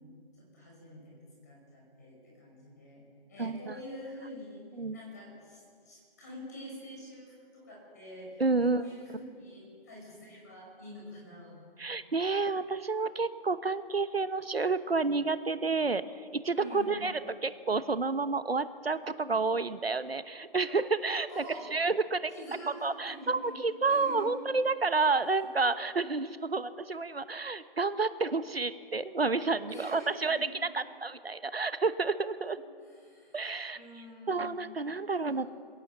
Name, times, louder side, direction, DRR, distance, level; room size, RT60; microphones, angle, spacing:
voice 1, 0.3-3.0 3.3-4.7 4.9-11.6 16.5-17.0 21.3-21.8 22.3-23.6 23.8-24.3 29.7-30.5 32.8-33.5 33.7-34.5 35.3-35.5, equal, 15° left, -3 dB, 5.8 m, -46 dB
voice 2, 3.4-3.7 4.8-5.0 8.4-8.8 11.8-21.4 21.7-22.3 22.8-30.4 30.7-32.6 33.3-33.8 34.3-35.5, right 3 dB, 80° right, 13 dB, 1.1 m, -30 dB
22.5 x 17.5 x 7.2 m, 2.2 s
figure-of-eight pair, 170°, 30 cm